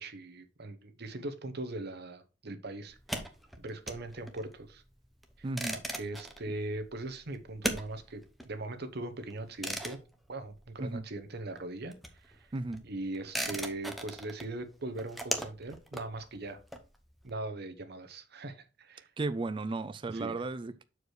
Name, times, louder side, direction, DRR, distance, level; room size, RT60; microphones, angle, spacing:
voice 1, 0.0-3.3 3.6-4.8 5.4-10.0 10.3-12.5 12.8-16.6 17.2-19.1 20.1-20.5, right 2 dB, 60° right, 1.0 m, -40 dB
sound 1, 2.9-11.3 11.5-17.3, equal, ahead, 0.9 m, -40 dB
voice 2, 5.4-5.8 10.8-11.0 12.5-12.8 19.2-20.8, right 3 dB, 25° right, 0.4 m, -34 dB
6.5 x 4.8 x 4.8 m
head